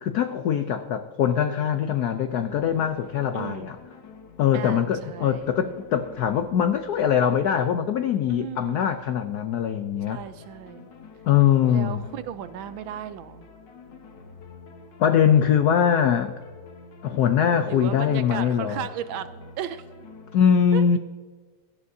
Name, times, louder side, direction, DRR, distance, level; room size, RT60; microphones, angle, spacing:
voice 1, 0.0-3.8 4.4-10.2 11.3-12.0 15.0-16.4 17.0-18.8 20.3-21.0, left 8 dB, 80° left, 9 dB, 0.8 m, -22 dB
sound 1, 2.5-20.4, left 4 dB, 60° left, 1.7 m, -48 dB
voice 2, 3.3-3.7 4.5-5.5 8.3-9.0 10.1-10.9 11.7-13.5 17.7-19.8 20.7-21.0, right 10 dB, 75° right, 12 dB, 1.3 m, -36 dB
17.0 x 12.0 x 2.7 m, 1.4 s
omnidirectional pair, 2.4 m